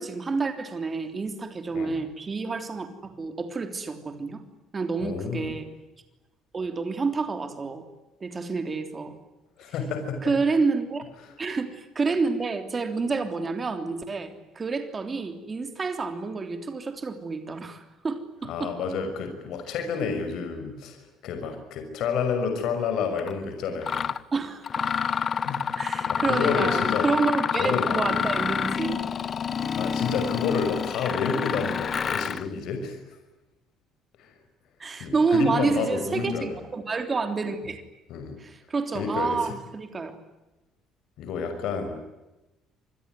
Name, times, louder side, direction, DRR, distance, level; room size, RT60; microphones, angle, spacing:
voice 1, 0.0-4.4 4.7-5.7 6.5-7.8 8.2-9.2 10.2-11.0 11.4-18.7 24.3-24.9 25.8-29.0 34.8-37.8 38.4-40.2, right 4 dB, 20° right, 7 dB, 3.3 m, -29 dB
voice 2, 1.7-2.0 5.0-5.6 9.6-10.4 18.4-24.1 25.4-25.7 26.1-27.1 27.6-28.0 29.8-33.2 34.2-34.3 35.0-36.6 38.1-38.4 38.9-39.5 41.2-42.0, left 5 dB, 65° left, 7 dB, 6.0 m, -30 dB
Mechanisms, 23.2-23.3 23.8-24.2 24.6-32.5, left 7 dB, 30° left, 0.9 m, -28 dB
27.5 x 21.5 x 9.4 m, 1.0 s
cardioid pair, 160°, 0 cm